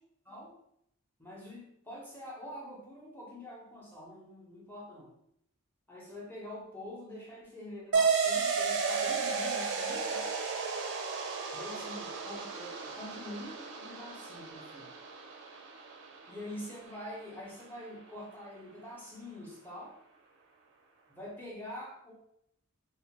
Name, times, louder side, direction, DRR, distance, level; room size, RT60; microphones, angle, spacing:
voice 1, 1.2-5.1 5.9-10.4 11.5-14.9 16.3-19.9 21.1-22.1, left 1 dB, 10° left, -4 dB, 0.7 m, -45 dB
sound 1, 7.9-16.9, right 5 dB, 55° right, 0.4 m, -33 dB
2.4 x 2.1 x 2.9 m, 0.74 s
head